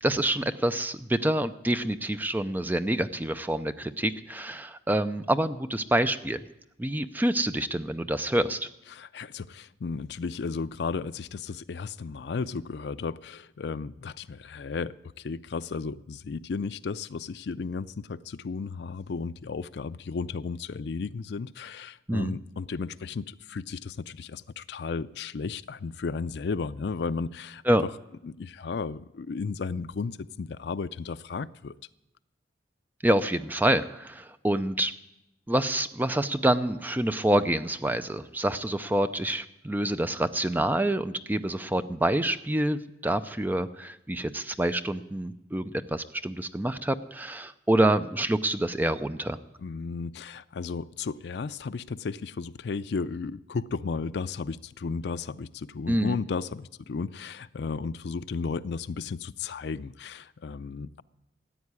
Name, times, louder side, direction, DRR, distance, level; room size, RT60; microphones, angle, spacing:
voice 1, 0.0-6.4 6.8-8.7 22.1-22.4 27.7-27.8 33.0-34.9 35.5-49.4 55.9-56.2, right 1 dB, 10° right, 11 dB, 0.4 m, -27 dB
voice 2, 8.9-27.6 28.2-31.8 49.6-61.0, left 4 dB, 65° left, 12 dB, 0.4 m, -34 dB
14.5 x 8.4 x 9.6 m, 0.88 s
head